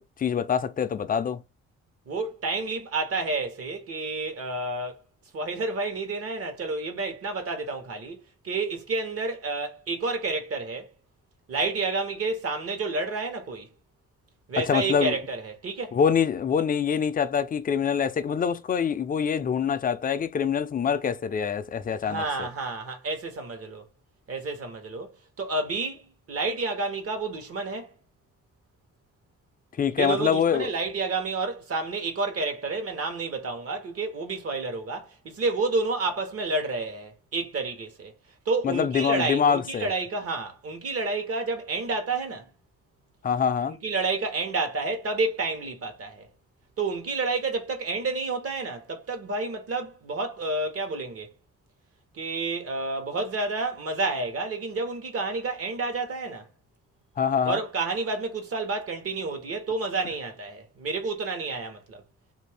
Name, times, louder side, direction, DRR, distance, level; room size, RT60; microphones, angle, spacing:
voice 1, 0.0-1.4 14.7-15.2 15.9-22.5 29.8-30.7 38.6-39.9 43.2-43.8 57.2-57.6, left 7 dB, 30° left, 0.4 m, -25 dB
voice 2, 2.1-5.0 5.3-10.9 11.5-13.7 14.5-16.0 22.0-23.8 24.3-27.9 30.0-38.1 38.4-42.5 43.7-46.3 46.8-51.3 52.1-56.5 57.4-62.0, right 3 dB, 50° right, 1.1 m, -30 dB
2.7 x 2.6 x 3.3 m
cardioid pair, 90°, 30 cm